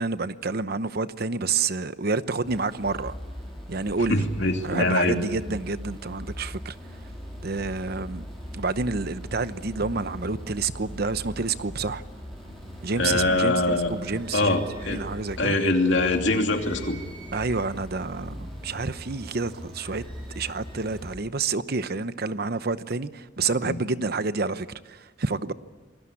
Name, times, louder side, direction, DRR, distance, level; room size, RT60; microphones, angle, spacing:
voice 1, 0.0-3.1 3.7-4.3 4.6-6.7 7.4-8.2 8.5-12.0 12.8-14.6 14.9-15.6 17.3-20.0 20.4-25.5, right 4 dB, 55° right, 0.9 m, -29 dB
sound 1, 2.4-21.1, equal, ahead, 7.9 m, -40 dB
voice 2, 4.1-5.2 13.0-13.9 14.3-15.0 15.4-17.0 23.6-23.7, left 2 dB, 75° left, 2.8 m, -23 dB
sound 2, 13.9-15.1 16.3-17.8 19.7-20.9, right 3 dB, 25° right, 7.9 m, -50 dB
27.0 x 20.0 x 8.6 m
head